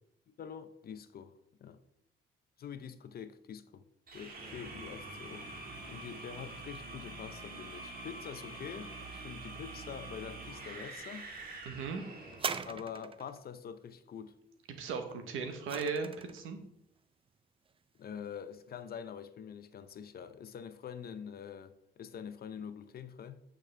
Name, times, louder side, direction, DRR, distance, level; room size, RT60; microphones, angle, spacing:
voice 1, 0.3-1.3 1.6-1.8 2.6-3.8 4.1-11.3 12.7-14.4 18.0-23.4, left 7 dB, 50° left, 0.6 m, -45 dB
sound 1, 4.1-12.6, right 2 dB, 50° right, 1.8 m, -46 dB
voice 2, 11.6-12.0 14.7-16.6, right 5 dB, 90° right, 1.1 m, -37 dB
sound 2, 12.3-13.4 15.1-16.5 17.3-17.4, right 6 dB, 30° right, 0.4 m, -40 dB
8.6 x 5.2 x 3.3 m
cardioid pair, 90°, 20 cm